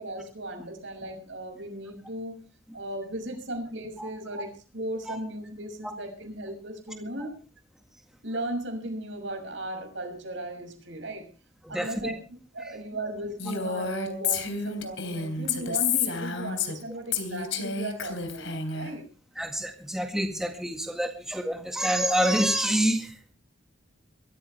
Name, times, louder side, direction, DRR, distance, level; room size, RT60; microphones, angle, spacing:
voice 1, 0.0-2.4 2.7-7.4 8.2-11.3 11.7-12.1 12.5-19.0, right 1 dB, 70° right, 4 dB, 6.4 m, -36 dB
voice 2, 11.6-12.1 12.6-12.7 19.4-23.3, equal, 5° right, 3 dB, 1.9 m, -27 dB
Female speech woman speaking, 13.4-16.8 17.1-18.9, left 6 dB, 75° left, 3.4 m, -30 dB
22.5 x 14.0 x 3.4 m, 0.35 s
head